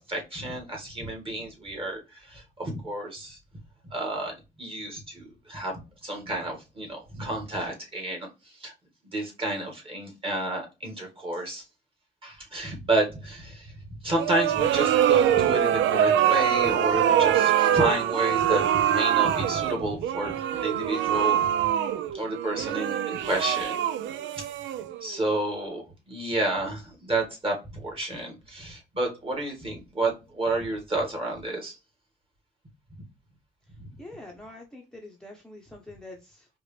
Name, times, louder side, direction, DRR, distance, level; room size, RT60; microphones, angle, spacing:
voice 1, 0.1-2.0 2.3-3.4 3.9-8.3 8.6-8.7 9.1-11.6 12.2-13.7 14.0-21.5 22.1-23.8 25.0-25.8 26.1-31.7 33.8-33.9, right 1 dB, 25° right, 1 dB, 1.8 m, -30 dB
sound 1, 14.2-25.2, right 10 dB, 75° right, 0.4 m, -24 dB
voice 2, 34.0-36.5, left 2 dB, 5° left, 1 dB, 0.9 m, -45 dB
4.6 x 2.5 x 3.3 m, 0.28 s
cardioid pair, 90°, 20 cm